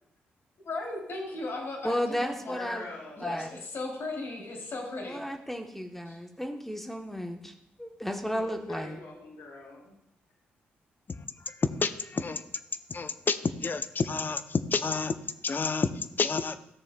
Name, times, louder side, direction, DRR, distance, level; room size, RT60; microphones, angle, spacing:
voice 1, 0.6-2.6 3.2-5.2 6.1-6.2, left 2 dB, 60° left, -1 dB, 2.9 m, -36 dB
voice 2, 1.8-2.8 3.2-3.5 5.0-7.5 7.8-9.0, equal, 5° left, 4 dB, 0.9 m, -33 dB
voice 3, 2.5-3.4 8.3-9.9, left 3 dB, 80° left, -1 dB, 1.4 m, -44 dB
voice 4, 11.8-12.4 12.9-15.1 15.4-15.9 16.2-16.6, left 4 dB, 40° left, 11 dB, 0.6 m, -29 dB
13.5 x 6.9 x 2.3 m, 0.79 s
supercardioid pair, 45°, 5 cm